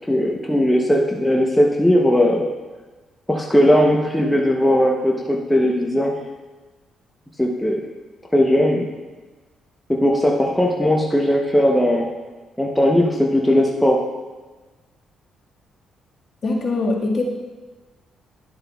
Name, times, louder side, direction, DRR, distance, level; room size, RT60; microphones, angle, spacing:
voice 1, 0.1-2.4 3.3-6.1 7.4-7.8 8.3-8.9 9.9-12.1 12.6-14.0, equal, 5° left, -1 dB, 0.8 m, -18 dB
voice 2, 16.4-17.2, left 3 dB, 45° left, -3 dB, 1.7 m, -22 dB
11.0 x 7.5 x 2.3 m, 1.3 s
cardioid pair, 90°, 0 cm